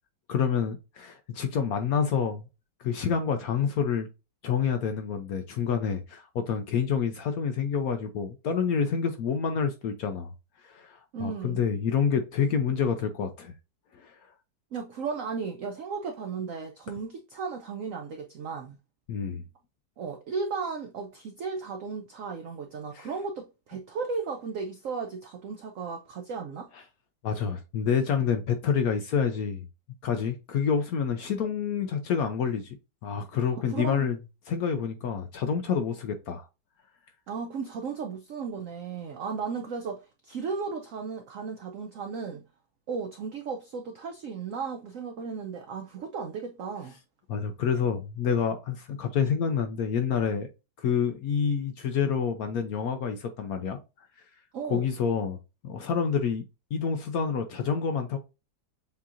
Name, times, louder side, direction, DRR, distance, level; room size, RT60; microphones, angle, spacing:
voice 1, 0.3-2.4 2.8-4.1 4.4-10.3 10.6-13.5 13.9-14.2 19.1-19.4 22.9-23.1 26.7-26.8 27.2-29.7 30.0-32.8 33.0-34.2 34.5-36.5 47.3-50.5 50.8-53.8 54.7-55.4 55.6-56.4 56.7-58.2, left 6 dB, 70° left, 0.9 m, -28 dB
voice 2, 11.1-11.6 14.7-18.8 20.0-26.7 33.7-34.1 37.3-42.4 42.9-47.0 54.5-54.9, right 5 dB, 90° right, 0.7 m, -35 dB
7.1 x 2.8 x 2.5 m
omnidirectional pair, 2.1 m